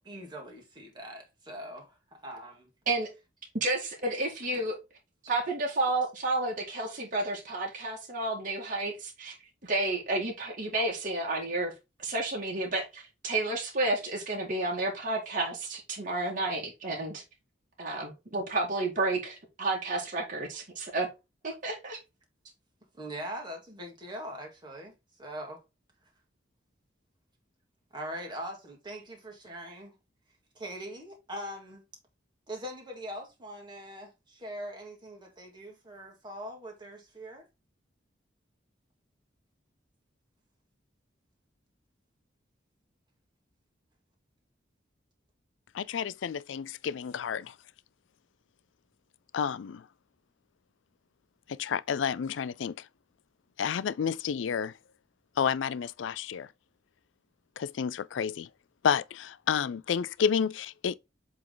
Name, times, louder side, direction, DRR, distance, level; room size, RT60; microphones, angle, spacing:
voice 1, 0.0-2.7 4.5-4.7 23.0-24.9 25.2-25.6 27.9-30.0 30.6-31.8 32.5-37.4, equal, 25° right, 2.2 m, -42 dB
voice 2, 3.5-4.8 5.2-9.4 9.6-11.7 12.0-17.2 17.8-21.1 21.4-22.0, right 2 dB, 45° right, 1.9 m, -31 dB
voice 3, 45.7-47.6 49.3-49.9 51.5-52.9 53.6-54.7 55.4-56.5 57.6-58.5 58.8-60.9, left 7 dB, 75° left, 0.4 m, -30 dB
7.7 x 3.6 x 3.9 m
head